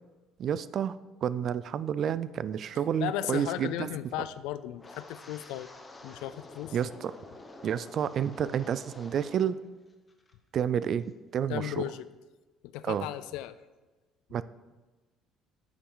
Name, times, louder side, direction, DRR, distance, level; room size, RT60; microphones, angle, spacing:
voice 1, 0.4-3.9 6.7-7.1 7.6-9.6 10.5-11.1 11.3-11.8 12.8-13.1 14.3-14.4, right 9 dB, 40° right, 16 dB, 0.3 m, -30 dB
voice 2, 3.0-5.7 6.0-6.8 11.5-12.1 12.6-13.6, left 13 dB, 85° left, 14 dB, 0.3 m, -35 dB
Wind, 4.8-9.6 9.9-10.3 10.8-11.0, left 2 dB, 15° left, 0.8 m, -49 dB
9.8 x 7.1 x 3.9 m, 1.2 s
cardioid pair, 160°, 0 cm